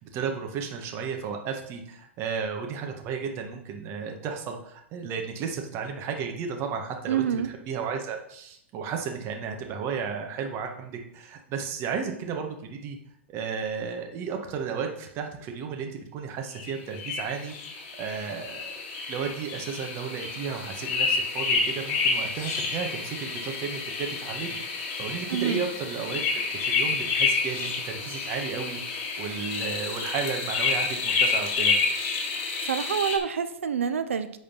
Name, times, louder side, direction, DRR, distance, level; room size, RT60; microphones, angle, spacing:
voice 1, 0.0-13.0 13.3-17.5 18.0-18.7 19.1-24.6 24.9-31.8, right 6 dB, 40° right, 3 dB, 1.6 m, -33 dB
voice 2, 7.1-7.5 25.3-25.6 32.6-34.4, right 8 dB, 85° right, 10 dB, 0.7 m, -27 dB
sound 1, 16.6-33.2, left 4 dB, 45° left, 2.1 m, -29 dB
8.6 x 4.3 x 5.6 m, 0.74 s
hypercardioid pair, 115°, 7 cm